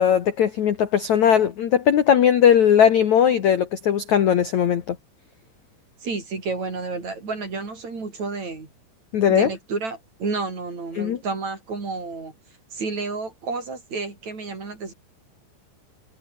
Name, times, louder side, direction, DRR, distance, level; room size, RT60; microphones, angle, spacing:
voice 1, 0.0-5.0 9.1-9.5 11.0-11.2, left 9 dB, 60° left, 2.0 m, -18 dB
voice 2, 6.0-8.7 9.3-12.3 12.7-14.9, right 4 dB, 35° right, 6.3 m, -30 dB
omnidirectional pair, 5.5 m